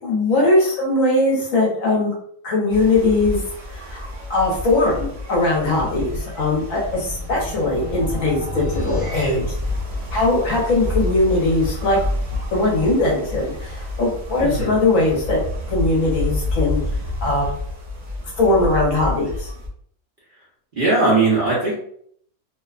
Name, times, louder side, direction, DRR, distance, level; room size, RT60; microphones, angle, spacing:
voice 1, 0.0-2.1 2.4-3.4 3.7-4.0 4.3-9.5 10.1-12.0 12.5-15.4 15.7-16.8 17.2-17.5 18.4-19.5, left 2 dB, 65° left, -3 dB, 1.1 m, -20 dB
sound 1, 2.7-19.7, left 1 dB, 65° right, 0.3 m, -29 dB
sound 2, 6.9-10.3, left 2 dB, 10° right, 0.7 m, -36 dB
voice 2, 14.4-14.8 20.8-21.7, right 3 dB, 45° right, -7 dB, 0.7 m, -18 dB
2.8 x 2.1 x 2.4 m, 0.64 s
omnidirectional pair, 1.6 m